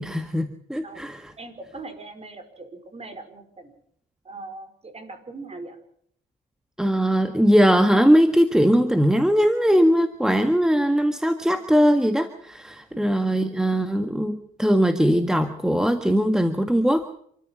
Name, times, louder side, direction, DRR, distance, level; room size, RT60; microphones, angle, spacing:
voice 1, 0.0-1.2 6.8-17.0, equal, 5° right, 8 dB, 1.7 m, -20 dB
voice 2, 1.4-3.7 4.2-5.8 12.9-13.2, right 3 dB, 30° right, 9 dB, 5.1 m, -40 dB
27.0 x 14.0 x 7.4 m, 0.66 s
cardioid pair, 90°, 20 cm